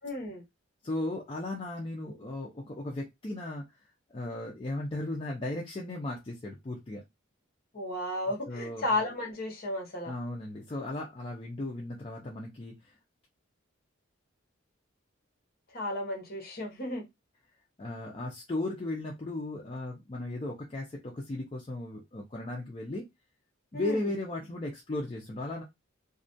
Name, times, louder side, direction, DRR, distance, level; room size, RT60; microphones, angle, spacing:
voice 1, 0.0-0.4 7.7-10.1 15.7-17.0 23.7-24.1, left 1 dB, 45° left, 0.9 m, -33 dB
voice 2, 0.8-3.6 4.1-7.0 8.3-8.9 10.0-12.9 17.8-23.1 23.7-25.6, left 2 dB, 25° left, 0.4 m, -36 dB
2.3 x 2.1 x 2.5 m
head